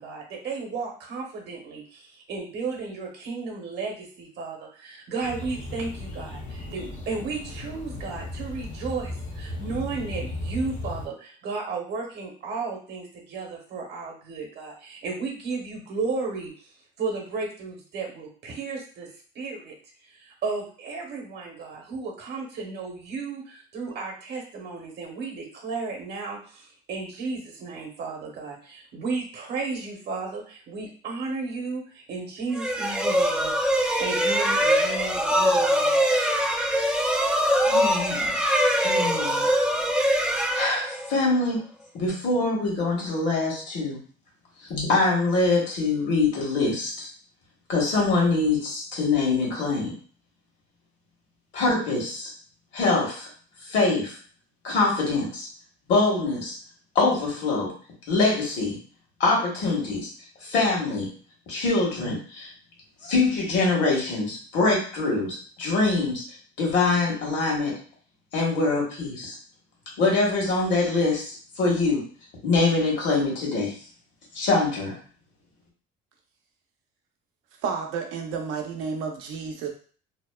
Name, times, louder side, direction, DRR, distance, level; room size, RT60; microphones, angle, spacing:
voice 1, 0.0-16.5 17.0-19.1 19.3-19.7 20.2-33.6 33.8-36.0, right 4 dB, 55° right, 0 dB, 0.9 m, -34 dB
sound 1, 5.2-11.1, left 1 dB, 40° left, 0.6 m, -36 dB
sound 2, 32.5-41.3, equal, 5° right, 0.3 m, -23 dB
voice 2, 37.7-39.4 40.5-41.6 41.9-44.0 44.7-47.1 47.7-49.9 51.5-52.3 52.7-53.3 53.6-54.2 54.6-55.5 55.9-56.6 56.9-57.7 58.1-58.8 59.2-60.1 60.4-61.1 61.5-62.5 63.0-66.2 66.6-67.7 68.3-69.4 70.0-72.0 72.4-73.7 74.3-75.0, left 3 dB, 65° left, -2 dB, 1.3 m, -24 dB
voice 3, 77.6-79.7, right 5 dB, 80° right, 2 dB, 0.6 m, -31 dB
2.7 x 2.1 x 2.2 m, 0.43 s
cardioid pair, 110°, 21 cm